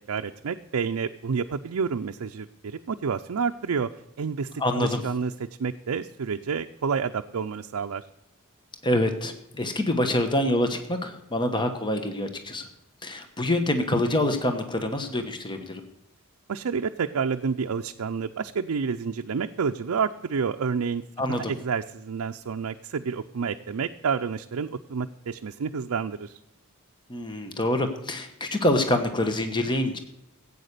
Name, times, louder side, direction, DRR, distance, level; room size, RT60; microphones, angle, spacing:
voice 1, 0.1-3.9 4.2-5.3 5.6-8.1 16.5-21.0 21.3-26.4, right 5 dB, 85° right, 5 dB, 0.5 m, -29 dB
voice 2, 4.6-5.0 8.8-12.7 13.0-15.8 21.2-21.5 27.1-30.0, left 1 dB, 20° left, 7 dB, 1.0 m, -26 dB
15.0 x 8.6 x 6.7 m, 0.88 s
head